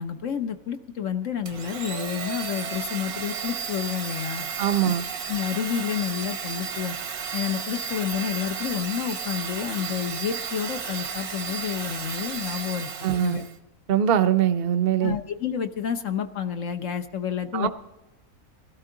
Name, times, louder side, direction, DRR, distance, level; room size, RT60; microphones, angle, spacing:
voice 1, 0.0-4.5 4.8-4.9 5.3-7.0 7.3-12.9 13.2-13.4 15.0-17.7, left 8 dB, 60° left, 8 dB, 1.2 m, -29 dB
Domestic sounds home sounds, 1.5-13.6, right 6 dB, 80° right, 1.6 m, -33 dB
voice 2, 4.6-5.0 13.0-13.4 13.9-15.2 17.5-17.7, right 9 dB, 50° right, 11 dB, 0.8 m, -22 dB
20.0 x 13.0 x 3.8 m, 0.98 s
omnidirectional pair, 1.5 m